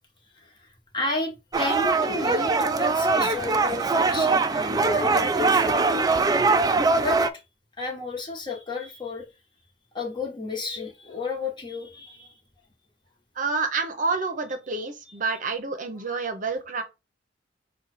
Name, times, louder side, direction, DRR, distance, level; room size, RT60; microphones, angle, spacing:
voice 1, 0.3-0.7 0.9-6.1 6.9-7.2 7.8-9.3 9.9-12.3, left 3 dB, 25° left, 1.1 m, -32 dB
sound 1, 1.5-7.3, right 3 dB, 20° right, 0.3 m, -22 dB
voice 2, 13.4-16.8, right 4 dB, 45° right, 0.7 m, -28 dB
5.2 x 2.3 x 4.1 m
head